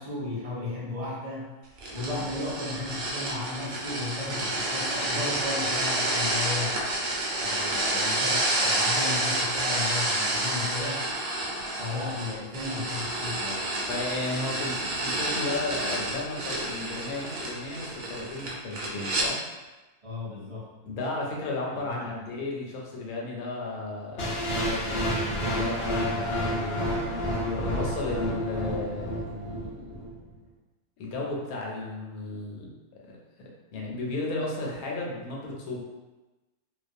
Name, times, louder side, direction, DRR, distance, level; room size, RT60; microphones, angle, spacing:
voice 1, 0.0-1.5 1.9-6.9 7.4-11.1 11.8-13.7 20.0-20.7 21.7-22.1, left 2 dB, 40° right, -9 dB, 0.5 m, -35 dB
sound 1, 1.8-19.3, right 1 dB, 65° right, 0.9 m, -29 dB
voice 2, 13.9-19.4 20.8-26.8 27.1-29.9 31.0-32.7 33.0-35.8, left 2 dB, 85° left, -2 dB, 1.1 m, -34 dB
sound 2, 24.2-30.2, equal, 60° left, 0.7 m, -30 dB
2.3 x 2.3 x 2.6 m, 1.1 s
omnidirectional pair, 1.5 m